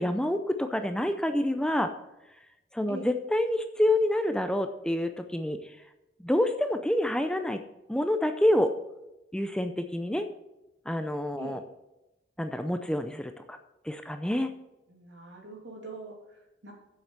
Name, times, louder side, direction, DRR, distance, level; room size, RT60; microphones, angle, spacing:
voice 1, 0.0-1.9 2.7-5.7 6.2-7.6 7.9-8.7 9.3-10.2 10.9-11.6 12.4-13.6 13.8-14.5, left 1 dB, 5° left, 7 dB, 0.4 m, -27 dB
voice 2, 14.9-16.7, right 2 dB, 85° right, 0 dB, 2.7 m, -43 dB
7.7 x 7.2 x 6.6 m, 0.96 s
head